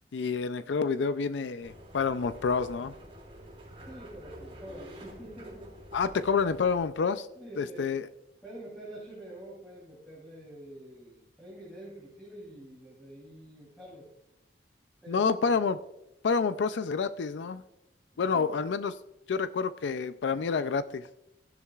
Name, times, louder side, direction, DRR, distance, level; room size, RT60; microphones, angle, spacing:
voice 1, 0.1-2.9 5.9-7.3 7.6-8.1 15.1-15.8 16.2-17.6 18.2-18.9 19.3-21.1, left 5 dB, 90° left, 12 dB, 0.4 m, -28 dB
sound 1, 1.6-6.8, equal, 30° right, 4.2 m, -48 dB
voice 2, 3.8-5.7 7.3-7.9 8.4-14.1 15.0-15.6 18.2-18.6, right 1 dB, 5° left, -6 dB, 3.1 m, -46 dB
15.5 x 11.0 x 2.4 m, 0.88 s
head